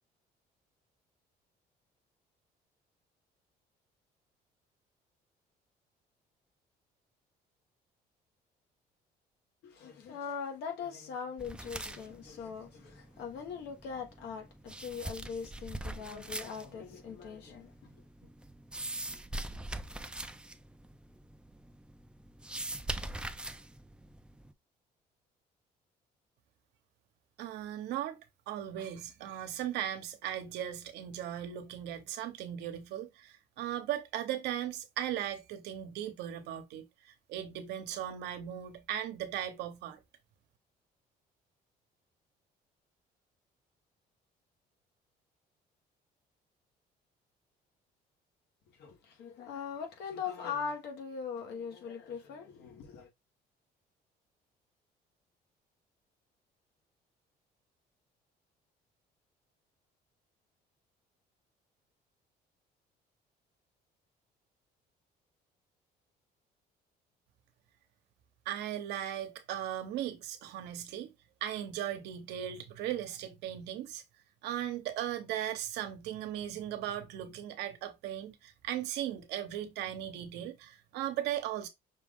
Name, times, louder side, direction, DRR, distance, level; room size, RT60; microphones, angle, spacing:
voice 1, 9.6-17.9 48.8-53.1, left 6 dB, 80° left, 1.3 m, -41 dB
sound 1, 11.4-24.5, right 1 dB, 5° right, 0.4 m, -43 dB
voice 2, 27.4-28.2 28.5-40.0 68.5-71.1 71.4-74.0 74.4-81.7, right 11 dB, 85° right, 0.9 m, -37 dB
5.8 x 2.5 x 3.5 m
cardioid pair, 110°, 17 cm